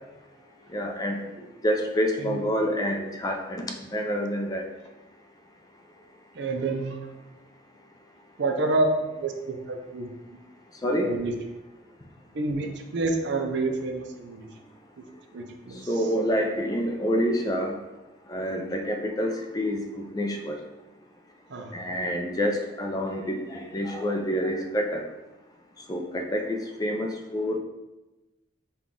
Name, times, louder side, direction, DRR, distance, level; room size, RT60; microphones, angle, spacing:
voice 1, 0.7-1.2 1.6-4.6 10.8-11.1 15.9-17.7 18.3-20.6 21.7-25.0 25.9-27.6, equal, 20° left, 3 dB, 0.4 m, -27 dB
voice 2, 6.3-7.1 8.4-8.9 9.2-10.1 11.0-11.3 12.3-14.5 15.3-15.9 21.5-21.7, right 3 dB, 65° right, 4 dB, 0.5 m, -28 dB
5.7 x 2.3 x 3.7 m, 1.1 s
head